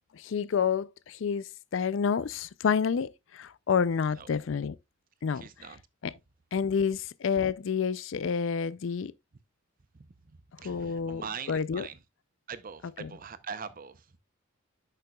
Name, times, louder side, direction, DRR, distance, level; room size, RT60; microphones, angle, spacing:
voice 1, 0.1-4.8 5.2-5.4 6.0-6.1 6.5-9.1 10.6-11.2 11.5-11.9 13.0-13.1, left 6 dB, 60° left, 0.4 m, -29 dB
voice 2, 5.3-5.8 9.9-10.1 10.6-12.0 12.5-14.1, right 6 dB, 40° right, 0.6 m, -42 dB
10.5 x 6.6 x 2.3 m
head